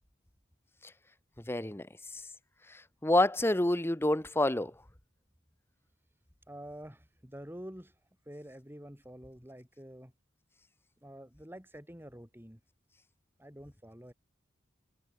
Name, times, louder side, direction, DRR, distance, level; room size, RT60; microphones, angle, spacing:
voice 1, 1.5-1.9 3.0-4.7, left 1 dB, 10° left, 1.0 m, -27 dB
voice 2, 6.5-10.1 11.0-12.6 13.4-14.1, equal, 10° right, 4.4 m, -48 dB
head